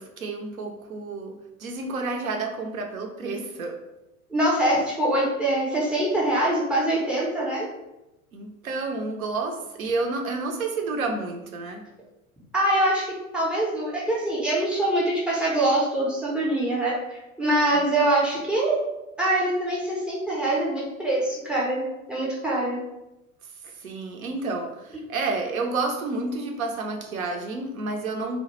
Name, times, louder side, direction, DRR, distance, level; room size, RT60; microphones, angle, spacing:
voice 1, 0.0-3.8 8.3-11.8 17.7-17.8 23.8-28.4, right 3 dB, 80° right, 3 dB, 0.5 m, -30 dB
voice 2, 4.3-7.7 12.5-17.0 17.4-18.8 19.2-22.8, right 1 dB, 5° right, -5 dB, 0.3 m, -24 dB
2.1 x 2.0 x 2.9 m, 0.95 s
figure-of-eight pair, 80°, 42 cm